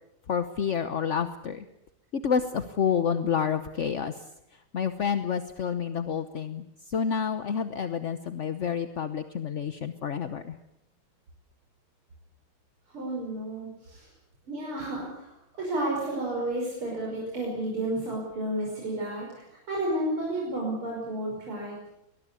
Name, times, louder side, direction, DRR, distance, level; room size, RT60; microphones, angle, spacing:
voice 1, 0.3-1.6 2.1-4.2 4.7-10.6, left 7 dB, 50° left, 10 dB, 1.0 m, -29 dB
voice 2, 12.9-14.1 14.5-21.8, right 1 dB, 90° right, -2 dB, 6.4 m, -32 dB
23.5 x 20.0 x 8.4 m, 0.84 s
omnidirectional pair, 2.3 m